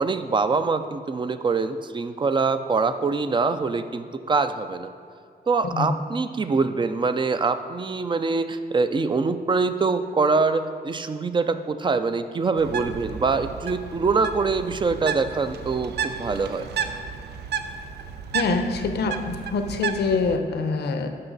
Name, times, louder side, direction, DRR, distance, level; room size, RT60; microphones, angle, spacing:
voice 1, 0.0-4.9 5.5-16.6, right 4 dB, 30° right, 10 dB, 0.5 m, -24 dB
Bird, 12.6-20.4, right 6 dB, 90° right, 0.5 m, -33 dB
voice 2, 18.3-21.1, left 4 dB, 85° left, 7 dB, 0.8 m, -25 dB
12.0 x 5.9 x 4.0 m, 2.4 s
wide cardioid pair, 120°, 17 cm